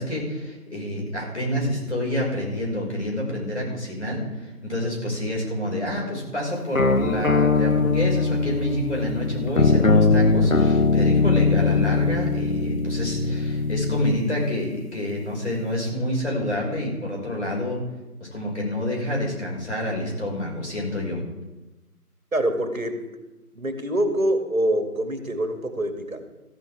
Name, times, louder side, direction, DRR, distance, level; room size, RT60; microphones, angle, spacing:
voice 1, 0.0-17.8 18.3-21.2, left 1 dB, 45° left, -2 dB, 5.4 m, -28 dB
sound 1, 6.8-14.2, left 3 dB, 60° left, 0.9 m, -21 dB
voice 2, 22.3-23.0 23.5-26.2, right 1 dB, 60° right, 7 dB, 2.1 m, -25 dB
14.5 x 10.5 x 4.8 m, 1.1 s
figure-of-eight pair, 175°, 46 cm